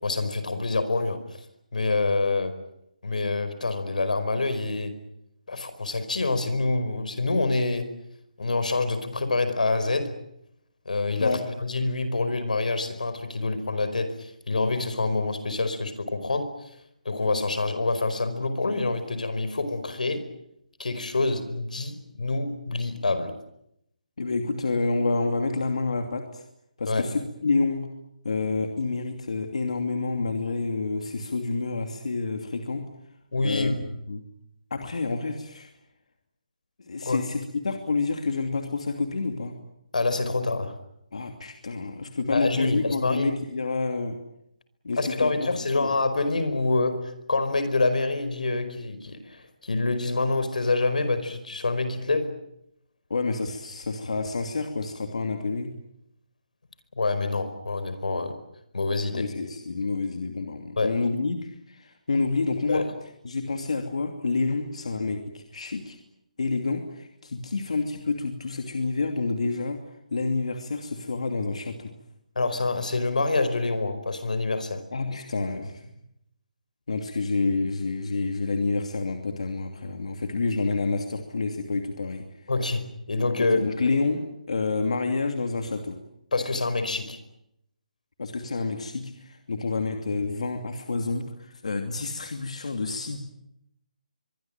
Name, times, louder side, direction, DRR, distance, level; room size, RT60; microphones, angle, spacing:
voice 1, 0.0-1.4 1.7-2.6 3.0-4.9 5.5-7.9 8.4-10.2 10.8-16.5 17.0-20.2 20.8-23.4 26.8-27.1 33.3-33.8 37.0-37.3 39.9-40.8 42.3-43.3 45.0-52.3 56.9-58.4 58.7-59.3 60.8-61.0 62.7-62.9 72.3-74.8 82.5-83.6 86.3-87.2, left 3 dB, 80° left, 11 dB, 5.0 m, -26 dB
voice 2, 24.2-26.4 26.8-27.9 28.2-32.8 33.4-33.8 34.1-34.2 34.7-35.7 36.8-39.5 41.1-44.2 44.8-45.5 45.8-45.9 53.1-55.7 59.1-62.8 63.2-66.0 66.4-69.8 70.1-71.9 74.9-75.9 76.9-82.2 83.4-84.2 84.5-86.0 88.2-93.2, left 3 dB, 55° left, 5 dB, 2.7 m, -28 dB
24.0 x 23.5 x 8.9 m, 0.79 s
hypercardioid pair, 180°, 4 cm